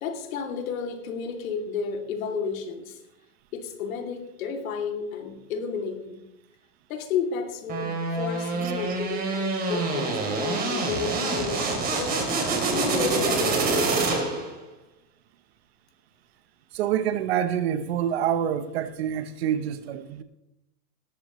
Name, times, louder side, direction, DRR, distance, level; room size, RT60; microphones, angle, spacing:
voice 1, 0.0-3.0 3.5-6.2 6.9-12.3 12.7-14.3, left 5 dB, 55° left, 2.7 m, -32 dB
sound 1, 7.7-14.5, right 3 dB, 20° right, 2.7 m, -26 dB
voice 2, 8.6-9.0 16.7-20.2, right 9 dB, 40° right, 0.9 m, -27 dB
18.5 x 14.0 x 3.1 m
hypercardioid pair, 155°, 49 cm